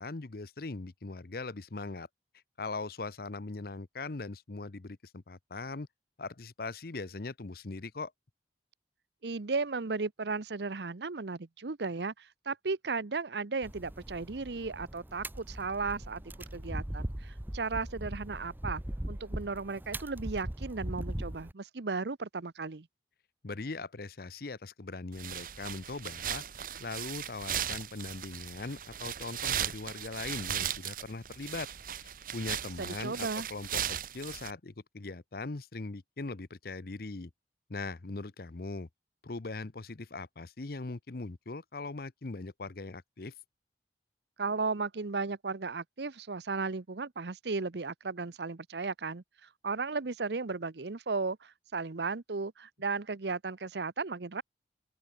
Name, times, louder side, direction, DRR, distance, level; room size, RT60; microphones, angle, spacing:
voice 1, 0.0-2.1 2.6-5.9 6.2-8.1 23.4-26.4 26.8-31.7 32.0-37.3 37.7-38.9 39.2-43.3, left 3 dB, 55° left, 0.8 m, -40 dB
voice 2, 9.2-16.2 16.5-18.8 19.1-22.9 32.8-33.5 44.4-54.4, right 4 dB, 70° right, 0.8 m, -35 dB
sound 1, 13.6-21.5, right 1 dB, 10° right, 0.7 m, -40 dB
sound 2, 25.1-34.5, right 9 dB, 50° right, 1.2 m, -37 dB
open air
head